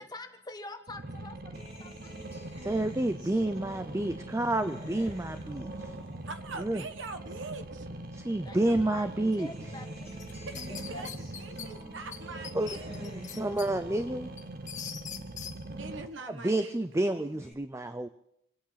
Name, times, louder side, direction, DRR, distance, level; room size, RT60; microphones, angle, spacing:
voice 1, 0.0-2.1 2.4-2.5 8.4-11.6, left 2 dB, 20° left, 5 dB, 1.5 m, -47 dB
sound 1, 0.9-16.1, right 1 dB, 50° right, 1.1 m, -42 dB
Acoustic guitar, 1.5-8.2 8.6-16.2 16.6-17.5, equal, 35° right, 5.6 m, -51 dB
voice 2, 2.6-5.9 6.6-6.8 8.1-9.5 12.5-14.3 16.3-18.1, right 1 dB, 15° right, 10 dB, 0.5 m, -30 dB
voice 3, 6.2-7.9 10.3-10.6 10.9-13.2 15.7-17.2, right 3 dB, 65° right, 9 dB, 1.3 m, -43 dB
sound 2, 10.2-11.7 12.1-12.2 12.4-13.7 14.1-15.5, left 8 dB, 40° left, 1.6 m, -41 dB
26.5 x 8.9 x 5.8 m, 0.76 s
head